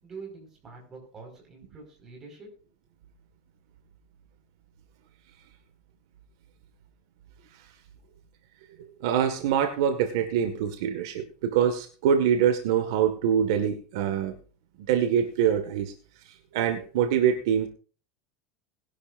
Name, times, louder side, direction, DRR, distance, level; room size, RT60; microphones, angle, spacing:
voice 1, 0.0-2.5, right 4 dB, 20° right, 1 dB, 5.1 m, -45 dB
voice 2, 9.0-14.3 14.9-15.9 16.5-17.7, right 8 dB, 65° right, 6 dB, 1.8 m, -24 dB
20.5 x 11.5 x 2.6 m, 0.37 s
supercardioid pair, 175°, 2 cm